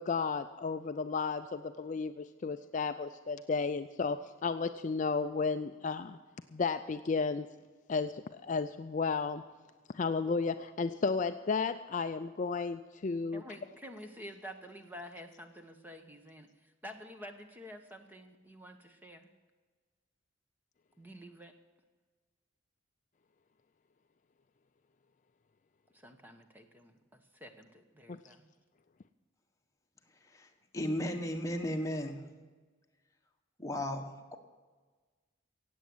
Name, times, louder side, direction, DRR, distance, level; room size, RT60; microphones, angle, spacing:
voice 1, 0.0-6.2 6.5-7.5 7.9-9.4 9.9-13.5 28.1-28.2, left 4 dB, 40° left, 9 dB, 0.4 m, -33 dB
voice 2, 13.3-19.3 21.0-21.5 25.9-28.5, equal, 10° right, 6 dB, 1.1 m, -49 dB
voice 3, 30.7-32.2 33.6-34.4, left 1 dB, 15° left, 3 dB, 1.3 m, -35 dB
16.5 x 8.4 x 7.9 m, 1.4 s
head